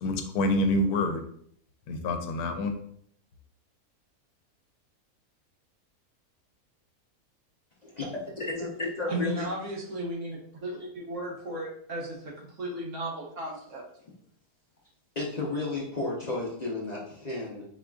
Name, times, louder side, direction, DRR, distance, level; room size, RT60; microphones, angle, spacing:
voice 1, 0.0-1.2 1.9-2.7, left 1 dB, 90° left, 6 dB, 1.1 m, -27 dB
voice 2, 7.8-9.5 15.2-17.7, left 2 dB, 40° left, -4 dB, 0.7 m, -33 dB
voice 3, 9.1-13.8, right 1 dB, 60° right, -2 dB, 1.3 m, -35 dB
4.7 x 3.6 x 2.4 m, 0.64 s
omnidirectional pair, 1.6 m